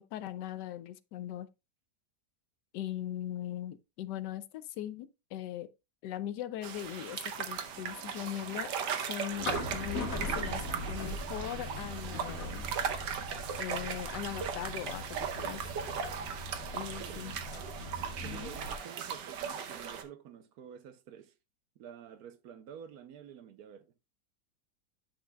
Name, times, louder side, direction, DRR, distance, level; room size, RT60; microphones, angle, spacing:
voice 1, 0.0-1.5 2.7-5.7 6.0-12.7 13.6-15.6 16.7-17.3 18.2-18.5, left 12 dB, 80° left, 1.2 m, -40 dB
sound 1, 6.6-20.0, right 7 dB, 85° right, 1.5 m, -38 dB
sound 2, 7.4-18.8, left 1 dB, 55° left, 1.7 m, -41 dB
voice 2, 16.9-17.4 18.2-21.3 21.8-23.9, right 9 dB, 70° right, 1.1 m, -49 dB
10.0 x 6.1 x 2.2 m
omnidirectional pair, 1.8 m